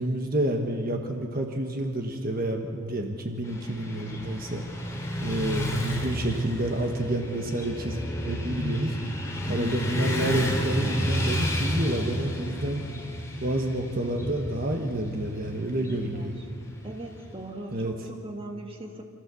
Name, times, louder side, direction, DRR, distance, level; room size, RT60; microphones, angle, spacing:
voice 1, 0.0-4.6 5.2-9.0 9.5-12.8 13.4-16.4 17.7-17.9, right 1 dB, 45° right, 3 dB, 1.4 m, -29 dB
Motorcycle / Traffic noise roadway noise, 3.4-17.5, equal, 15° left, 2.6 m, -31 dB
voice 2, 9.5-9.8 15.7-16.3 16.8-19.0, right 1 dB, 25° right, 3 dB, 1.6 m, -39 dB
27.0 x 14.5 x 7.0 m, 2.2 s
head